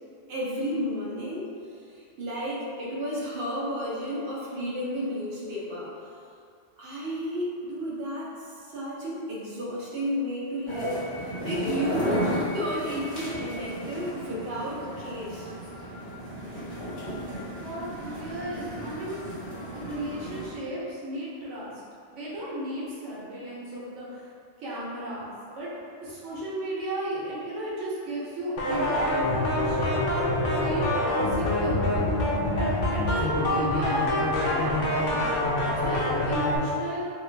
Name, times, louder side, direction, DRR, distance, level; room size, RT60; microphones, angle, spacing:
voice 1, 0.3-5.9 6.8-12.3 12.5-15.5, equal, 60° right, -6 dB, 0.9 m, -32 dB
sound 1, 10.7-20.5, equal, 25° left, 1.4 m, -34 dB
voice 2, 17.6-19.2 19.7-21.7 22.1-24.3 24.6-25.3 25.5-25.7 26.0-32.1 32.5-35.4 35.8-37.0, right 1 dB, 85° right, -7 dB, 1.2 m, -35 dB
sound 2, 28.6-36.6, left 1 dB, 80° left, 1.0 m, -25 dB
3.0 x 2.4 x 3.1 m, 2.3 s
omnidirectional pair, 1.2 m